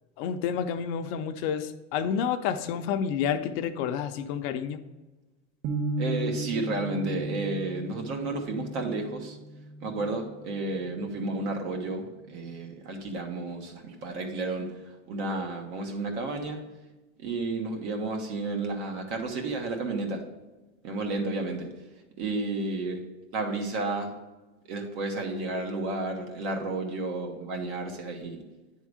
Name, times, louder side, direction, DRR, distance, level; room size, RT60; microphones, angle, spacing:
voice 1, 0.2-4.8, left 7 dB, 50° left, 8 dB, 0.6 m, -29 dB
sound 1, 5.6-11.7, right 1 dB, 40° right, 0.8 m, -36 dB
voice 2, 6.0-9.4 9.8-14.7 15.1-16.6 17.2-20.2 20.8-21.7 22.2-23.0 23.3-24.1 24.7-28.4, right 2 dB, 60° right, 2 dB, 1.6 m, -32 dB
9.7 x 3.7 x 4.9 m, 1.2 s
supercardioid pair, 125°, 38 cm